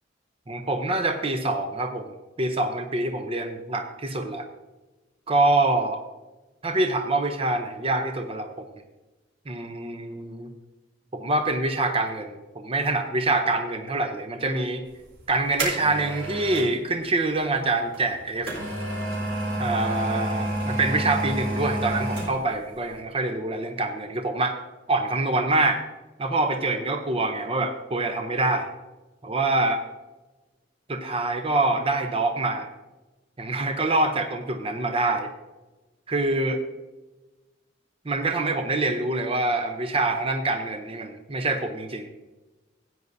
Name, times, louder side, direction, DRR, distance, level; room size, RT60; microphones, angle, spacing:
voice 1, 0.5-2.1 2.4-4.5 5.3-6.0 6.6-8.6 9.5-10.5 11.1-14.8 15.3-18.5 19.6-24.6 24.9-25.8 26.2-28.7 29.2-29.8 30.9-32.7 33.4-35.3 36.1-36.6 38.1-42.1, right 2 dB, 30° right, 5 dB, 0.7 m, -25 dB
sound 1, 15.0-16.8 17.9-22.6 22.9-23.0, right 1 dB, 80° right, 4.1 m, -29 dB
15.5 x 9.4 x 2.7 m, 1.1 s
head